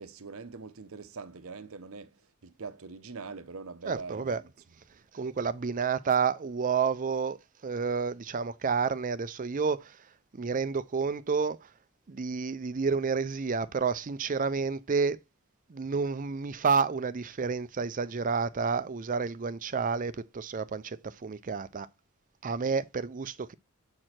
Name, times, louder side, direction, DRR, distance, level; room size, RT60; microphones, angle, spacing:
voice 1, 0.0-4.4, right 4 dB, 70° right, 0.8 m, -43 dB
voice 2, 3.9-4.4 5.1-10.0 10.3-11.7 12.1-15.2 15.7-21.9 22.4-23.5, right 5 dB, 35° right, 0.5 m, -30 dB
7.5 x 4.7 x 4.3 m
head